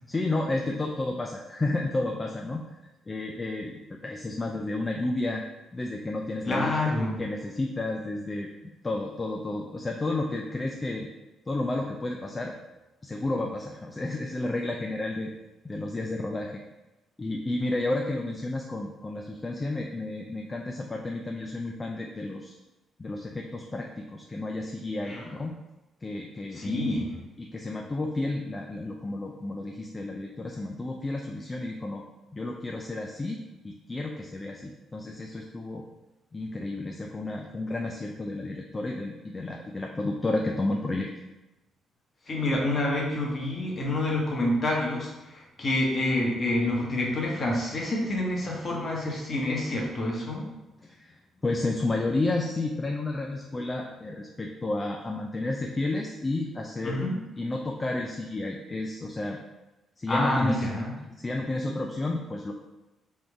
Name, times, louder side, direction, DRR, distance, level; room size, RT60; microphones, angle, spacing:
voice 1, 0.1-2.8 3.1-5.4 5.7-8.5 8.8-11.1 11.5-12.5 13.0-15.3 15.6-16.5 17.2-22.5 23.0-25.6 26.0-27.1 27.4-32.0 32.3-35.8 36.3-41.1 50.8-51.1 51.4-57.0 57.4-59.4 60.0-60.6 61.1-62.5, left 2 dB, 25° left, 1 dB, 0.4 m, -31 dB
voice 2, 6.4-7.2 25.0-25.3 26.5-27.2 42.3-50.5 56.8-57.2 60.1-60.9, left 1 dB, 40° left, -2 dB, 1.2 m, -27 dB
3.5 x 2.6 x 4.6 m, 1.0 s
cardioid pair, 90°, 0 cm